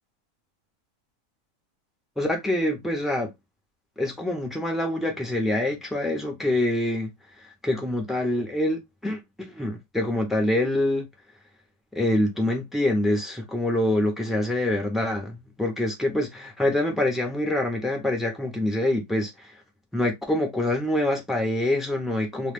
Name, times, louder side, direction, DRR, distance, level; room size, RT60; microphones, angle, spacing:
voice 1, 2.2-3.3 4.0-7.1 7.6-11.0 11.9-19.5 19.9-22.5, left 1 dB, ahead, 0.5 m, -25 dB
2.5 x 2.5 x 3.4 m
omnidirectional pair, 1.6 m